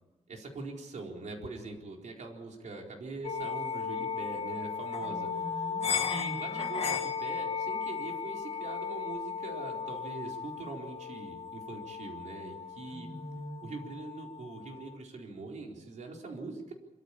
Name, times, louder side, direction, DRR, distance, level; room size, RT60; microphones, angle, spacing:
voice 1, 0.3-5.3 6.1-13.1 13.6-16.7, right 3 dB, 80° right, 1 dB, 4.3 m, -42 dB
sound 1, 3.2-15.0, left 6 dB, 60° left, 1.8 m, -36 dB
voice 2, 5.0-6.6 12.9-13.7, equal, 30° left, 0 dB, 8.0 m, -44 dB
24.5 x 14.5 x 8.7 m, 1.0 s
wide cardioid pair, 165°, 12 cm